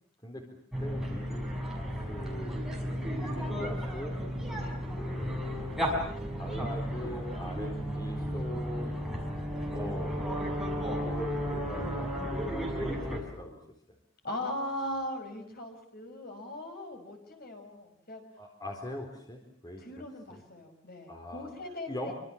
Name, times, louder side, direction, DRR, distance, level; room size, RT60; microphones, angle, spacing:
sound 1, 0.7-13.2, equal, ahead, 6.2 m, -34 dB
voice 1, 0.8-4.2 4.9-5.9 6.4-9.0 9.7-13.6 13.9-14.0 18.4-20.0 20.3-20.4 21.1-21.5 21.9-22.1, left 1 dB, 20° left, 2 dB, 4.2 m, -42 dB
voice 2, 14.2-18.2 19.8-22.1, left 1 dB, 45° left, 4 dB, 5.8 m, -39 dB
27.0 x 25.5 x 7.4 m, 0.64 s
head